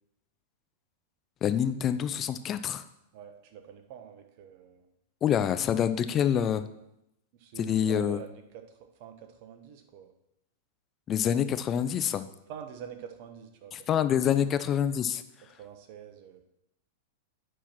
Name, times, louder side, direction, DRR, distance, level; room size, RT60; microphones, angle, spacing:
voice 1, 1.4-2.8 5.2-6.7 7.6-8.2 11.1-12.3 13.7-15.2, left 9 dB, 30° left, 11 dB, 0.7 m, -26 dB
voice 2, 3.1-4.9 7.3-10.1 12.5-14.5 15.5-16.4, right 8 dB, 55° right, 6 dB, 1.3 m, -46 dB
10.0 x 4.6 x 5.9 m, 0.84 s
hypercardioid pair, 100°, 0 cm